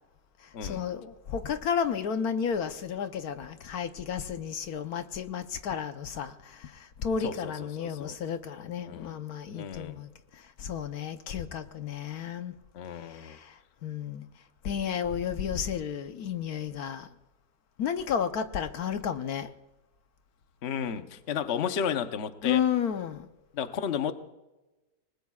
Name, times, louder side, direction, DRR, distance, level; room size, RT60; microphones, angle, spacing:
voice 1, 0.6-12.5 13.1-13.5 13.8-14.3 14.6-17.1 17.8-19.5 22.4-23.3, left 7 dB, 70° left, 1.3 m, -32 dB
voice 2, 7.2-8.2 8.8-9.2 9.5-10.0 12.7-13.4 20.6-22.6 23.5-24.1, left 7 dB, 50° left, 1.0 m, -33 dB
29.5 x 20.0 x 2.4 m
omnidirectional pair, 1.7 m